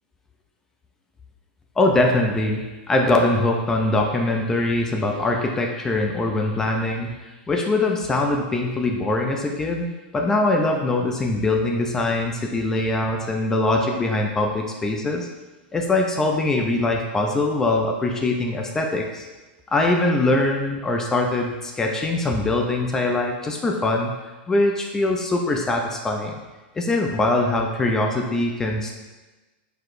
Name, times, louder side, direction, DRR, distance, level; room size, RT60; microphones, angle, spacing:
voice 1, 1.8-7.2 7.5-9.9 10.1-15.3 15.7-19.3 19.7-24.1 24.5-26.4 26.7-28.9, left 2 dB, 10° left, 2 dB, 0.4 m, -22 dB
7.9 x 4.7 x 2.5 m, 1.2 s
supercardioid pair, 180°, 6 cm